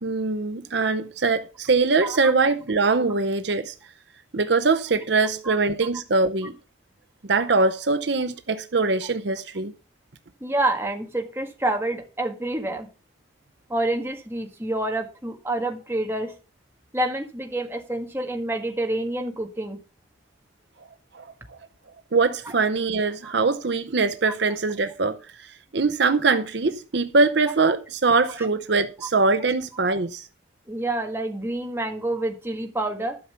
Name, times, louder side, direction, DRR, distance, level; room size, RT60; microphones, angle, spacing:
voice 1, 0.0-3.7 4.3-6.5 7.3-9.7 21.1-21.6 22.1-30.3, right 3 dB, 60° right, 0.7 m, -22 dB
voice 2, 10.4-12.9 13.7-16.3 16.9-19.8 23.2-23.3 24.2-24.3 28.4-28.5 30.7-33.2, right 1 dB, 10° right, 1.7 m, -28 dB
12.0 x 5.8 x 6.8 m
head